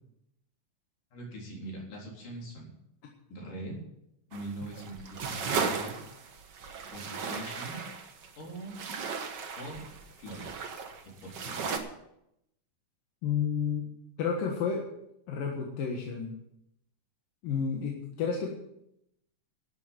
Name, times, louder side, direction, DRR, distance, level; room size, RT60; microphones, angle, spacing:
voice 1, 1.1-2.7 3.3-3.8 4.3-5.9 6.9-7.8 8.4-8.8 9.6-9.9 10.2-10.5 11.2-11.7, right 1 dB, 75° left, -2 dB, 5.4 m, -41 dB
sound 1, 4.3-11.8, right 5 dB, 60° right, 1.1 m, -36 dB
voice 2, 13.2-13.9 14.2-14.8 15.3-16.3 17.4-18.5, left 6 dB, 90° left, 0 dB, 3.3 m, -31 dB
12.0 x 8.1 x 9.0 m, 0.80 s
omnidirectional pair, 3.8 m